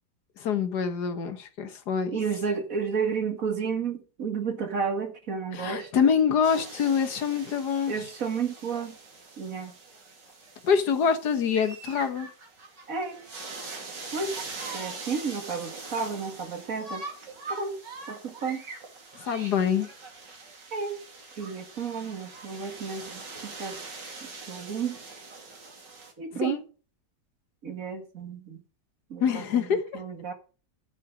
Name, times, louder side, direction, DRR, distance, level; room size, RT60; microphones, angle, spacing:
voice 1, 0.4-2.2 5.5-8.1 10.6-12.3 19.2-19.9 26.3-26.6 29.2-30.0, left 7 dB, 70° left, 1.7 m, -25 dB
voice 2, 2.1-5.9 7.9-9.0 9.4-9.7 12.9-13.2 14.1-14.3 14.7-17.0 17.5-17.7 18.1-18.6 20.7-21.0 21.4-23.7 24.2-25.0 26.2-26.6 27.6-28.6 29.1-29.7 29.9-30.3, right 5 dB, 50° right, 2.0 m, -32 dB
sound 1, 6.4-26.1, right 3 dB, 80° right, 3.1 m, -42 dB
11.5 x 8.3 x 5.1 m
omnidirectional pair, 1.8 m